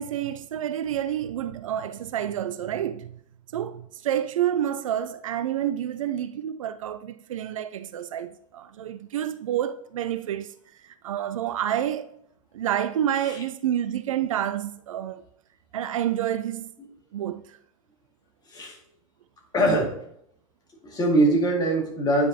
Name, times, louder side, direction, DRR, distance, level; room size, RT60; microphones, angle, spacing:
voice 1, 0.0-3.2 3.5-10.5 10.8-12.1 12.5-15.2 15.7-16.7 17.1-17.4, right 10 dB, 65° right, 0.4 m, -29 dB
voice 2, 19.5-19.9 20.8-22.3, right 1 dB, 20° left, 2.0 m, -22 dB
9.4 x 4.9 x 2.8 m
figure-of-eight pair, 100°, 18 cm